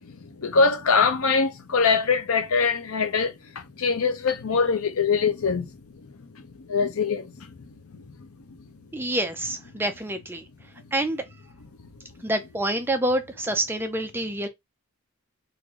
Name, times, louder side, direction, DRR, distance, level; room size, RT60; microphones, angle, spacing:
voice 1, 0.4-3.3 3.8-5.7 6.7-7.3, left 5 dB, 75° left, 0.7 m, -22 dB
voice 2, 8.9-10.5 10.9-11.2 12.2-14.5, right 1 dB, 10° right, 0.4 m, -27 dB
3.2 x 2.6 x 3.6 m
head